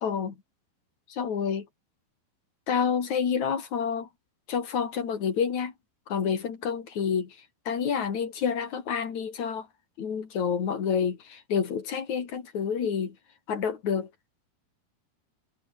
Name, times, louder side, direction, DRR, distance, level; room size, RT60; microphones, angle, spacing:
voice 1, 0.0-0.3 1.1-1.7 2.7-4.1 4.5-5.7 6.1-7.4 7.7-9.7 10.0-13.2 13.5-14.1, left 7 dB, 50° left, 3.9 m, -28 dB
omnidirectional pair, 4.5 m